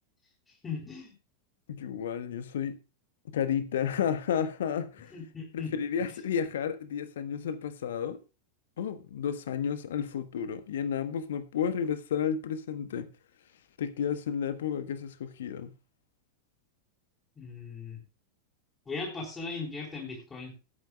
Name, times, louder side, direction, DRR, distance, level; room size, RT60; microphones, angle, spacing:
voice 1, 0.5-1.1 5.1-5.7 6.0-6.2 17.4-18.0 18.9-20.5, left 4 dB, 15° left, 4.3 m, -38 dB
voice 2, 1.7-2.8 3.3-5.1 5.5-8.2 8.8-13.1 13.8-15.7, left 8 dB, 60° left, 1.3 m, -32 dB
19.5 x 9.3 x 2.4 m
figure-of-eight pair, 90°, 0 cm